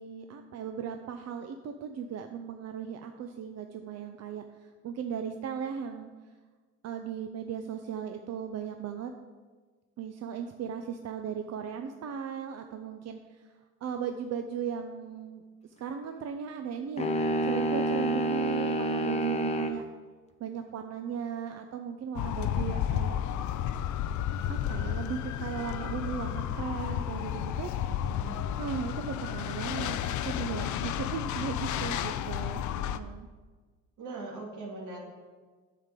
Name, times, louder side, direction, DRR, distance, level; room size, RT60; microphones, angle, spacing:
voice 1, 0.0-6.1 6.8-9.1 10.0-13.4 13.8-15.4 15.8-17.1 17.4-19.8 20.4-23.2 24.5-27.7 28.6-33.3, right 7 dB, 60° right, 6 dB, 0.6 m, -37 dB
sound 1, 17.0-19.8, right 1 dB, 20° left, 0.7 m, -28 dB
sound 2, 22.2-33.0, left 10 dB, 70° left, 0.5 m, -32 dB
voice 2, 28.1-28.5 34.0-35.0, right 3 dB, 80° right, -2 dB, 2.2 m, -41 dB
9.2 x 6.7 x 3.7 m, 1.4 s
cardioid pair, 90°, 30 cm